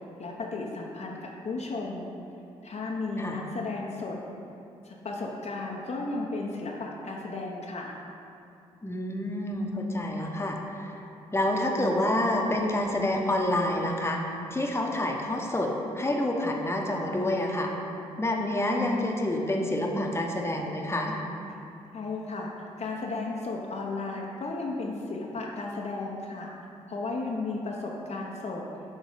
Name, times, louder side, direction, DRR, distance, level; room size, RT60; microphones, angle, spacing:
voice 1, 0.2-2.1 2.6-4.2 4.8-7.9 21.9-22.5 22.8-26.5 26.9-28.6, left 3 dB, 45° left, -1 dB, 0.8 m, -34 dB
voice 2, 8.8-11.0 11.3-14.2 14.5-17.7 18.2-21.2, left 1 dB, 15° left, 0 dB, 1.0 m, -28 dB
6.4 x 4.0 x 5.0 m, 2.7 s
hypercardioid pair, 40°, 15 cm